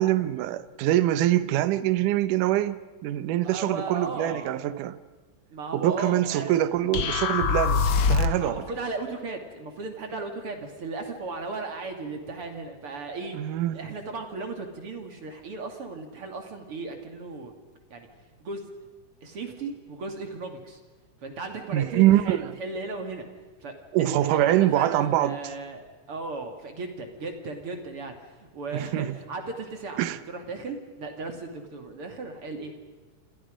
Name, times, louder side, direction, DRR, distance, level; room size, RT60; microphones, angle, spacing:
voice 1, 0.0-5.0 5.7-8.6 13.3-13.9 21.7-22.6 23.9-25.4 28.7-29.2 30.0-30.2, right 13 dB, 75° right, 2.4 m, -24 dB
voice 2, 3.4-4.5 5.5-6.6 8.4-13.4 13.7-17.5 17.9-18.1 18.4-18.6 19.2-20.8 21.2-23.2 23.6-30.0 30.3-32.7, right 3 dB, 45° right, 2.9 m, -36 dB
sound 1, 6.9-8.5, left 5 dB, 60° left, 1.3 m, -23 dB
28.0 x 27.5 x 5.1 m
omnidirectional pair, 3.8 m